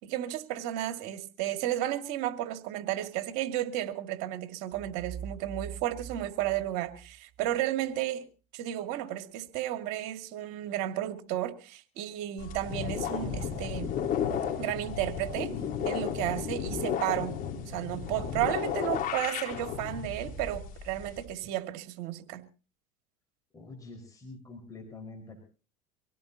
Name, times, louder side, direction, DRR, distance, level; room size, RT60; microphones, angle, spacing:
voice 1, 0.0-8.3 8.5-13.9 14.6-15.5 15.8-17.4 17.7-22.4, right 13 dB, 65° right, 7 dB, 2.3 m, -33 dB
sound 1, 4.7-7.5, right 9 dB, 40° right, 2.9 m, -43 dB
sound 2, 12.4-21.2, left 8 dB, 50° left, 4.3 m, -33 dB
voice 2, 23.5-25.4, left 3 dB, 20° left, 3 dB, 5.0 m, -46 dB
25.0 x 17.0 x 2.9 m, 0.36 s
supercardioid pair, 100°, 18 cm